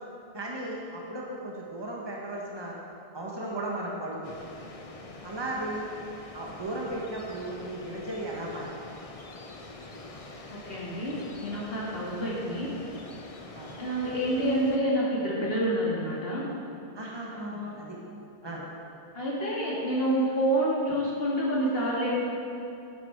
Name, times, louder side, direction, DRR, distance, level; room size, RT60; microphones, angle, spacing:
voice 1, 0.3-2.8 3.1-4.3 5.2-5.9 6.3-8.8 13.5-13.7 14.4-14.5 16.9-18.0 18.4-18.6, right 1 dB, 25° right, -3 dB, 1.7 m, -36 dB
sound 1, 4.2-14.8, left 2 dB, 35° left, 0.9 m, -45 dB
voice 2, 10.5-12.7 13.8-16.4 17.3-17.7 19.1-22.2, right 1 dB, 70° left, -6 dB, 2.6 m, -28 dB
13.0 x 10.5 x 4.8 m, 2.6 s
omnidirectional pair, 1.0 m